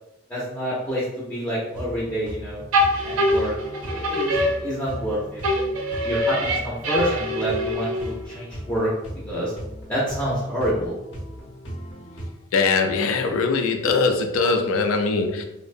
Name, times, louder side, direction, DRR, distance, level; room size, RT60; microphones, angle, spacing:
voice 1, 0.3-2.6 3.0-3.5 3.8-5.4 6.0-8.9 9.3-9.5 9.9-10.9, equal, 10° left, -9 dB, 0.4 m, -27 dB
sound 1, 1.7-12.3, equal, 55° left, 0.7 m, -37 dB
sound 2, 2.7-5.1 5.4-8.3, equal, 90° right, 0.5 m, -24 dB
voice 2, 12.5-15.4, left 4 dB, 85° left, 5 dB, 0.4 m, -21 dB
2.6 x 2.0 x 2.4 m, 0.89 s
head